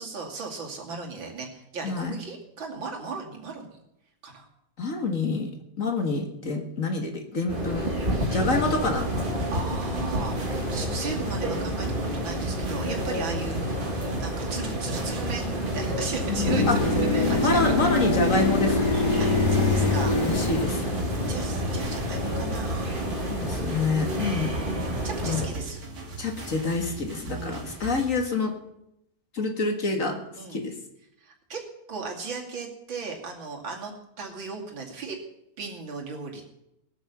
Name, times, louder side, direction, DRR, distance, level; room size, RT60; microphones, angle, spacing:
voice 1, 0.0-3.8 4.2-4.5 8.3-8.4 9.5-13.8 14.2-17.9 19.2-20.2 21.3-22.9 25.0-25.8 27.3-27.7 30.4-30.6 31.2-31.6 31.9-35.2 35.6-36.4, right 4 dB, 80° right, 1 dB, 3.2 m, -36 dB
voice 2, 4.8-5.5 5.8-7.9 8.3-9.5 16.4-16.8 17.4-19.0 20.2-21.0 23.3-24.5 25.2-25.4 26.2-28.5 29.3-30.2 30.5-30.8, left 3 dB, 45° left, 4 dB, 2.0 m, -27 dB
sound 1, 7.5-25.5, equal, 25° right, 2.3 m, -29 dB
sound 2, 8.4-28.1, right 3 dB, 60° right, 3.1 m, -39 dB
sound 3, 16.5-21.5 25.5-25.6, left 2 dB, 60° left, 3.1 m, -25 dB
18.5 x 8.7 x 6.8 m, 0.83 s
omnidirectional pair, 2.1 m